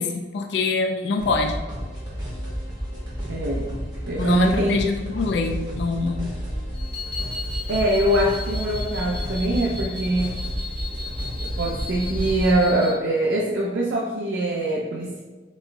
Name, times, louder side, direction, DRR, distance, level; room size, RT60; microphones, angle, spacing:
voice 1, 0.0-1.6 4.2-6.3, left 3 dB, 65° left, 4 dB, 0.3 m, -25 dB
sound 1, 1.2-12.5, equal, 25° right, 1.1 m, -31 dB
voice 2, 3.3-3.7 4.0-4.8 7.7-10.4 11.4-15.2, right 1 dB, 80° right, -2 dB, 0.5 m, -23 dB
sound 2, 6.7-13.0, left 3 dB, 35° left, 1.2 m, -36 dB
4.1 x 4.0 x 2.3 m, 1.3 s
head